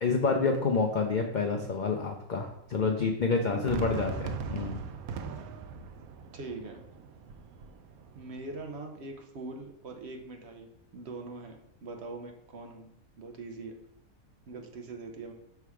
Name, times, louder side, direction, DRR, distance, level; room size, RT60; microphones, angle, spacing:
voice 1, 0.0-4.8, left 4 dB, 85° left, 3 dB, 0.4 m, -28 dB
voice 2, 3.5-3.8 6.3-6.8 8.1-12.9 13.2-13.7 14.5-15.3, right 3 dB, 55° right, 4 dB, 0.9 m, -42 dB
Fireworks, 3.7-8.7, right 5 dB, 80° right, 1.0 m, -40 dB
5.7 x 3.5 x 4.7 m, 0.80 s
omnidirectional pair, 1.5 m